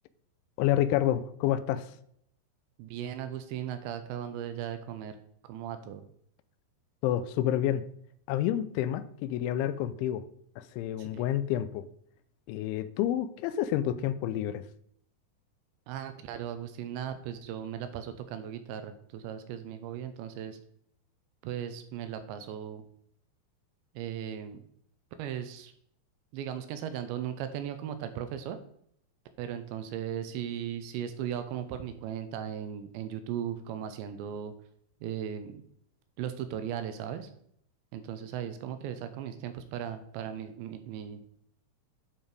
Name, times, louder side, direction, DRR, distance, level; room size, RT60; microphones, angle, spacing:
voice 1, 0.6-1.9 7.0-7.8 8.3-10.2 10.6-11.9 12.5-14.6, left 12 dB, 85° left, 14 dB, 3.0 m, -29 dB
voice 2, 2.8-5.2 5.5-6.1 11.0-11.2 15.9-20.6 21.4-22.8 23.9-24.6 25.2-25.7 26.3-28.6 29.4-34.5 35.0-35.6 36.2-37.3 37.9-41.2, right 9 dB, 85° right, 9 dB, 2.9 m, -37 dB
9.3 x 5.4 x 5.0 m, 0.68 s
omnidirectional pair, 5.4 m